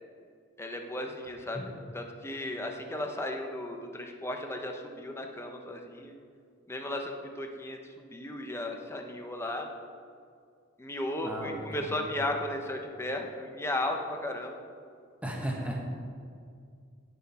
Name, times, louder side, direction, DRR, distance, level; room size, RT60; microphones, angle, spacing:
voice 1, 0.6-6.1 6.7-9.7 10.8-14.6, left 1 dB, 15° left, 3 dB, 0.8 m, -35 dB
voice 2, 11.2-12.1 15.2-15.9, right 1 dB, 5° right, -1 dB, 1.4 m, -35 dB
17.0 x 6.1 x 4.3 m, 2.2 s
head